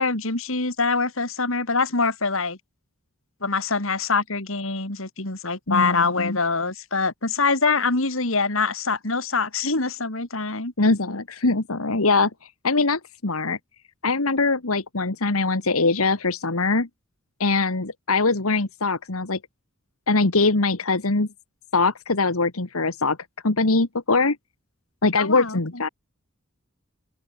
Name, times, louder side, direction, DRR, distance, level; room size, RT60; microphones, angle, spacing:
voice 1, 0.0-2.6 3.4-10.7 25.2-25.8, left 4 dB, 65° left, 3.4 m, -24 dB
voice 2, 5.7-6.4 10.8-12.3 12.6-13.6 14.0-16.9 17.4-19.4 20.1-21.3 21.7-23.2 23.4-24.4 25.0-25.9, left 3 dB, 85° left, 1.9 m, -22 dB
open air
head